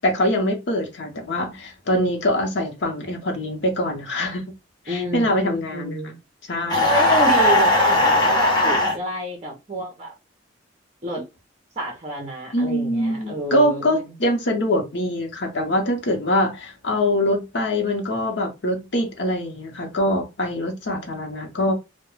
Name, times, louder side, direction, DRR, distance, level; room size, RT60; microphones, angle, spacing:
voice 1, 0.0-4.5 4.9-6.0 6.5-6.9 12.5-21.7, left 1 dB, 60° left, 0.7 m, -23 dB
voice 2, 4.9-6.2 6.9-10.1 11.0-11.2 11.8-14.0, right 1 dB, 30° right, 0.7 m, -29 dB
sound 1, 6.7-9.0, left 1 dB, 20° left, 0.7 m, -18 dB
2.3 x 2.2 x 3.1 m
head